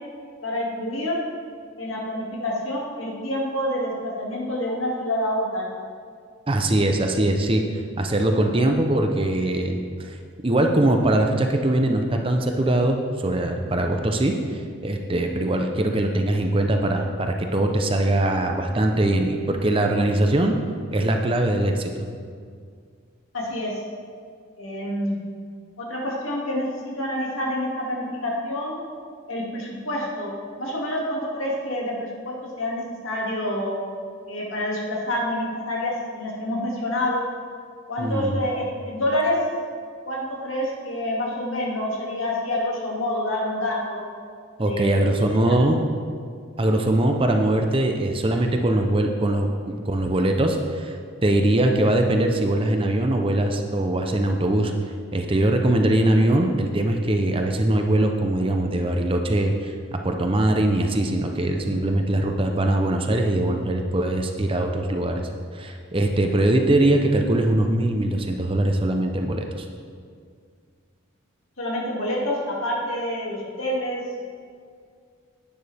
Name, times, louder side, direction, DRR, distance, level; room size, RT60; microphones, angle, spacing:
voice 1, 0.4-1.2 1.8-5.7 23.3-23.7 24.6-25.2 25.8-28.8 29.3-30.3 30.6-33.8 34.3-37.2 37.9-39.4 40.0-44.0 44.6-45.6 71.6-74.2, left 1 dB, 75° left, -3 dB, 2.3 m, -27 dB
voice 2, 6.5-7.6 8.0-10.2 10.4-20.6 20.9-22.0 38.0-38.5 44.6-45.8 46.6-51.0 51.2-54.7 55.1-59.7 60.0-69.6, right 1 dB, 25° right, 3 dB, 0.6 m, -22 dB
10.5 x 9.3 x 3.5 m, 2.1 s
head